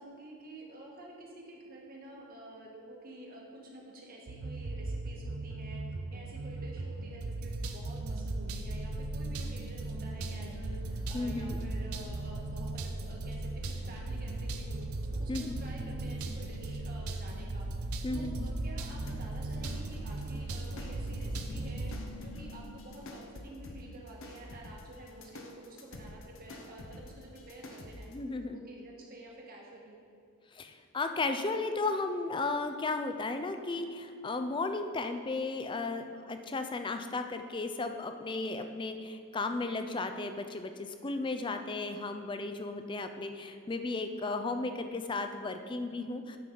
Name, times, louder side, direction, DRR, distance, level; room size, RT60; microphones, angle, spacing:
voice 1, 0.0-5.8 6.1-14.8 15.1-17.7 18.1-21.9 22.2-28.1 28.5-30.0, right 1 dB, 45° right, -2 dB, 1.4 m, -49 dB
sound 1, 4.3-22.0, right 2 dB, 90° right, 0.6 m, -38 dB
sound 2, 7.9-23.8, left 1 dB, 65° right, 1.5 m, -44 dB
voice 2, 11.1-11.6 15.3-15.6 18.0-18.3 28.1-28.6 30.5-46.4, left 3 dB, 20° left, 7 dB, 0.4 m, -35 dB
sound 3, 19.1-28.2, left 1 dB, 60° left, 0.8 m, -49 dB
9.2 x 5.8 x 3.9 m, 2.3 s
head